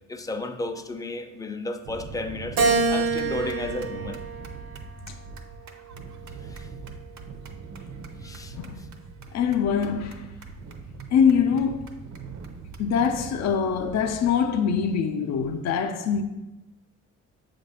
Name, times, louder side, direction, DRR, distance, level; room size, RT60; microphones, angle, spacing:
voice 1, 0.1-2.6 2.9-4.2 6.4-6.7 8.2-8.6, left 2 dB, 10° left, 0.5 m, -33 dB
sound 1, 1.8-14.5, right 4 dB, 70° right, 0.7 m, -42 dB
Keyboard (musical), 2.6-5.1 5.7-6.9, right 4 dB, 85° right, 1.1 m, -27 dB
voice 2, 8.5-8.9 9.3-10.3 11.1-11.9 12.8-16.2, left 7 dB, 60° left, 0.5 m, -24 dB
7.2 x 2.5 x 5.4 m
cardioid pair, 90°, 30 cm